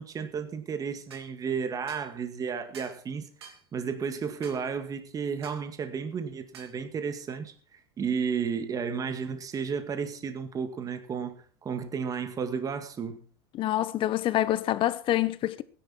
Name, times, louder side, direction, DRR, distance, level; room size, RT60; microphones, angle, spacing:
voice 1, 0.0-13.2, right 6 dB, 25° right, 2.1 m, -33 dB
sound 1, 1.1-1.3 1.9-2.1 2.7-3.0 3.4-3.6 4.4-4.6 5.4-5.6 6.5-6.8, right 5 dB, 90° right, 3.2 m, -48 dB
voice 2, 13.5-15.6, left 13 dB, 40° left, 1.1 m, -26 dB
17.0 x 10.5 x 4.4 m
hypercardioid pair, 105°, 13 cm